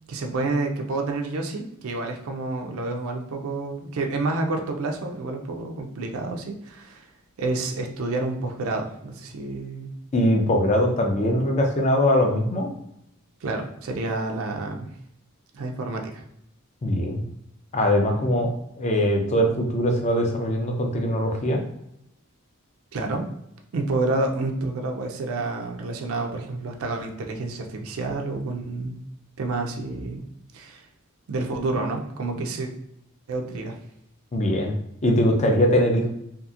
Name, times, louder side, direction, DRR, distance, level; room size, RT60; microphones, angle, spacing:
voice 1, 0.1-7.1 7.4-9.9 13.4-14.9 15.5-16.2 22.9-23.3 23.7-29.0 29.4-30.3 30.5-30.9 31.3-32.7 33.3-33.8, right 2 dB, 65° right, 3 dB, 0.4 m, -29 dB
voice 2, 10.1-12.7 16.8-17.2 17.7-18.5 18.8-21.6 34.3-34.7 35.0-36.1, equal, 30° left, 2 dB, 0.5 m, -21 dB
2.8 x 2.4 x 2.4 m, 0.79 s
head